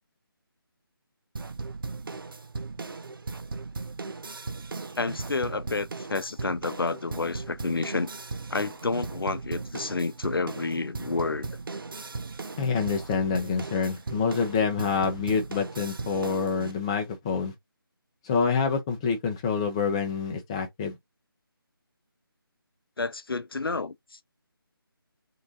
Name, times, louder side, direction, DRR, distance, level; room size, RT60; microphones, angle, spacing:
sound 1, 1.4-16.7, right 3 dB, 65° right, 0.7 m, -37 dB
voice 1, 5.0-8.1 8.5-11.5 23.0-24.2, left 3 dB, 70° left, 0.6 m, -30 dB
voice 2, 12.6-17.5 18.2-20.9, left 5 dB, 15° left, 0.6 m, -27 dB
3.8 x 2.4 x 3.7 m
figure-of-eight pair, 155°, 12 cm